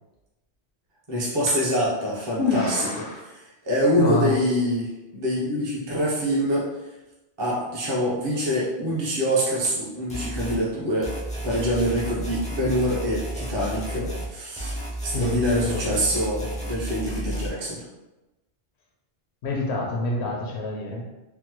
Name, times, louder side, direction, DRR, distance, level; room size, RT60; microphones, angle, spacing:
voice 1, 1.1-2.9 3.3-6.7 7.4-11.2 11.4-14.0 14.3-14.8 15.0-17.8, equal, 30° right, -6 dB, 0.7 m, -25 dB
voice 2, 2.4-3.3 4.0-4.4 13.9-14.2 15.1-15.9 19.4-21.0, left 2 dB, 80° left, 0 dB, 0.9 m, -27 dB
sound 1, 10.1-10.6 11.0-14.3 14.6-17.5, right 1 dB, 10° left, 0.4 m, -32 dB
3.5 x 2.0 x 2.9 m, 1.0 s
omnidirectional pair, 1.1 m